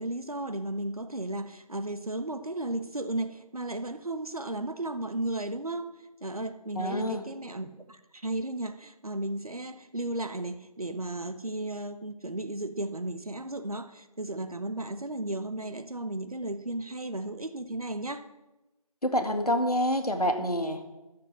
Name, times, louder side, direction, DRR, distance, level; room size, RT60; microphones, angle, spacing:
voice 1, 0.0-18.3, right 2 dB, 70° right, 9 dB, 1.2 m, -34 dB
voice 2, 6.8-7.2 19.0-20.8, equal, 75° left, 5 dB, 2.1 m, -27 dB
12.0 x 6.8 x 7.6 m, 1.0 s
figure-of-eight pair, 170°, 20 cm